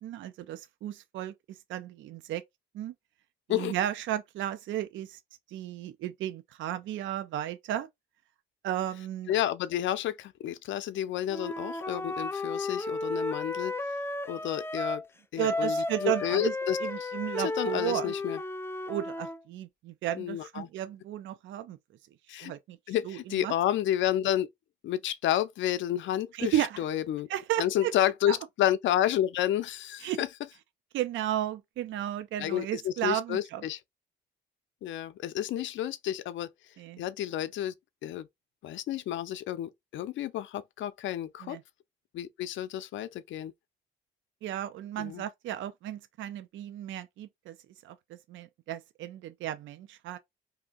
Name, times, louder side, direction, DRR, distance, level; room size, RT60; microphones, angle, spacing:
voice 1, 0.0-2.4 2.7-2.9 3.5-5.2 5.5-7.9 8.6-9.3 15.4-16.5 16.8-18.1 18.9-21.8 22.4-22.8 23.1-23.5 26.3-26.8 27.3-27.9 28.3-28.4 30.0-30.2 30.9-33.6 36.8-37.0 41.4-41.6 44.4-47.6 47.8-50.2, right 12 dB, 75° right, 0.4 m, -34 dB
voice 2, 9.3-13.7 14.3-15.0 15.3-17.1 17.4-18.4 20.2-20.7 22.3-22.5 22.9-24.5 24.8-27.3 27.6-30.3 32.4-33.8 34.8-36.5 37.0-37.7 38.0-38.3 38.6-41.6 42.1-43.5 45.0-45.2, left 11 dB, 70° left, 0.5 m, -30 dB
Wind instrument woodwind instrument, 11.3-15.1 15.4-19.4, left 2 dB, 10° left, 0.4 m, -33 dB
2.8 x 2.5 x 3.6 m
cardioid pair, 90°, 20 cm